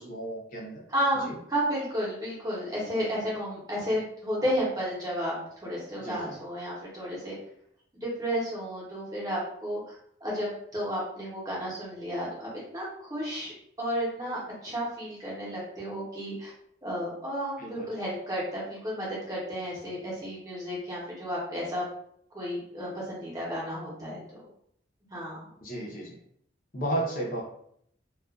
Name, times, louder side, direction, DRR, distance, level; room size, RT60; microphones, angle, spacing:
voice 1, 0.0-0.8 1.2-1.3 6.0-6.3 17.6-17.9 25.6-26.2 26.7-27.4, right 1 dB, 45° left, -3 dB, 0.7 m, -33 dB
voice 2, 0.9-5.3 5.6-7.4 7.9-9.9 10.2-13.5 13.8-16.5 16.8-21.9 22.3-24.4 25.1-25.5, equal, 20° right, -5 dB, 0.8 m, -32 dB
2.3 x 2.3 x 2.4 m, 0.68 s
head